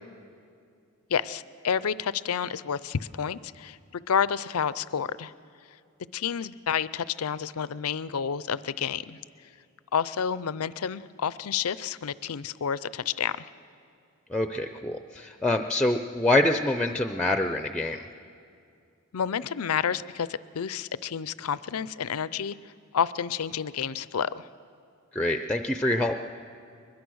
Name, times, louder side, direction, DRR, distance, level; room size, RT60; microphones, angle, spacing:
voice 1, 1.1-5.3 6.1-9.2 9.9-13.5 19.1-24.5, left 7 dB, 90° left, 17 dB, 0.5 m, -30 dB
voice 2, 14.3-18.0 25.1-26.2, left 1 dB, 5° left, 7 dB, 0.5 m, -25 dB
22.0 x 21.0 x 6.3 m, 2.4 s
head